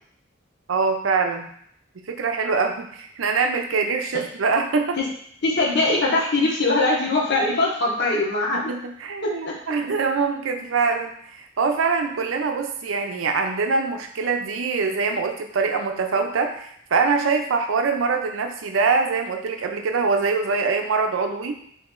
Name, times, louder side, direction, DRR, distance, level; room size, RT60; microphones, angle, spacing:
voice 1, 0.7-1.5 2.1-5.0 8.5-21.6, right 4 dB, 85° right, 4 dB, 0.5 m, -24 dB
voice 2, 5.4-8.7, left 2 dB, 60° left, -3 dB, 0.9 m, -21 dB
3.1 x 2.8 x 3.6 m, 0.67 s
head